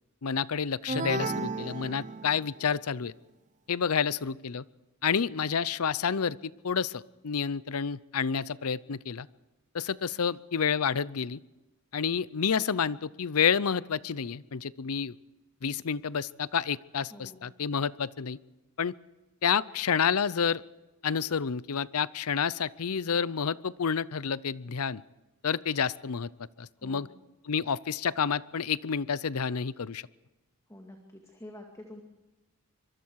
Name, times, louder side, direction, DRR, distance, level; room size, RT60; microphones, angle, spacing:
voice 1, 0.2-3.1 3.7-4.6 5.0-9.3 9.7-11.4 11.9-15.2 15.6-18.4 18.8-18.9 19.4-20.6 21.0-25.0 25.4-26.3 26.6-27.1 27.4-30.0, left 6 dB, 80° left, 20 dB, 0.6 m, -29 dB
sound 1, 0.9-2.7, right 3 dB, 35° right, 0.7 m, -34 dB
voice 2, 17.1-17.5 26.8-27.2 30.7-32.0, left 1 dB, 15° left, 2 dB, 2.2 m, -48 dB
25.0 x 23.0 x 4.8 m, 1.1 s
head